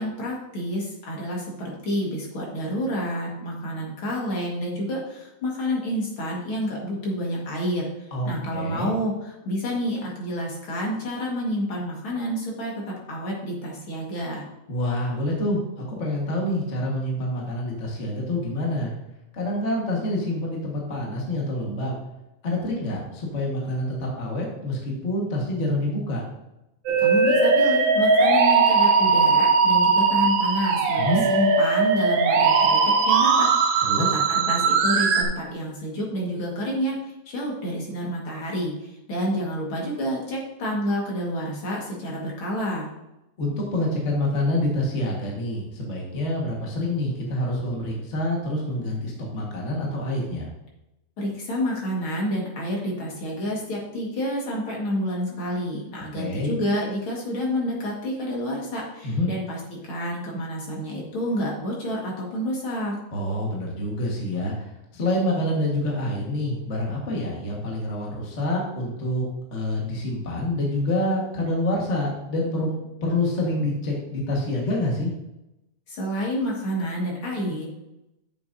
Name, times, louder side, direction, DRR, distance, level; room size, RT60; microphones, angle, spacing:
voice 1, 0.0-14.5 27.0-42.9 51.2-62.9 75.9-77.6, equal, 50° left, -3 dB, 2.4 m, -29 dB
voice 2, 8.1-8.9 14.7-18.9 19.3-21.9 22.4-26.2 31.0-31.2 33.8-34.1 43.4-50.5 56.1-56.5 59.0-59.3 63.1-69.2 69.5-75.1, left 1 dB, 35° left, -2 dB, 1.3 m, -27 dB
Musical instrument, 26.9-35.2, right 4 dB, 65° right, 1.6 m, -19 dB
10.5 x 7.0 x 2.7 m, 0.91 s
omnidirectional pair, 3.3 m